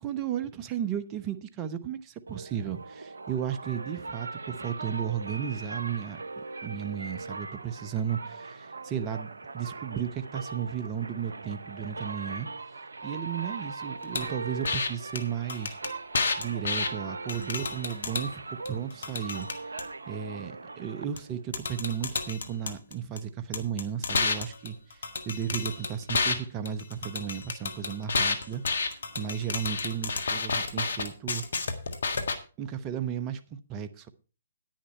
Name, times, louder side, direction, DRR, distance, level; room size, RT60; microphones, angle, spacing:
voice 1, 0.0-6.2 6.6-12.5 13.0-15.8 16.4-18.4 18.7-19.6 20.1-31.4 32.6-34.1, right 8 dB, 25° right, 0.9 m, -34 dB
sound 1, 2.3-21.6, right 3 dB, 80° right, 0.8 m, -40 dB
sound 2, 14.1-14.3 14.6-14.9 15.2-15.3 15.5-16.9 17.3-18.3 18.7-19.8 21.2-21.3 21.5-23.2 23.5-26.4 26.7-32.4, left 4 dB, 70° left, 1.5 m, -30 dB
10.5 x 9.9 x 4.4 m
figure-of-eight pair, 135°, 0 cm